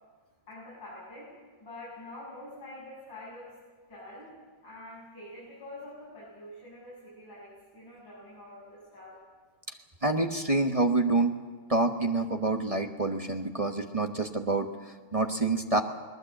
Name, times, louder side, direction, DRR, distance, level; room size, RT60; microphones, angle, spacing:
voice 1, 0.5-3.5 3.9-4.3 4.6-9.2, left 1 dB, 80° left, -8 dB, 8.7 m, -46 dB
voice 2, 10.0-11.4 11.7-15.8, right 2 dB, 25° right, 4 dB, 1.0 m, -27 dB
21.0 x 20.0 x 7.9 m, 1.4 s
omnidirectional pair, 2.0 m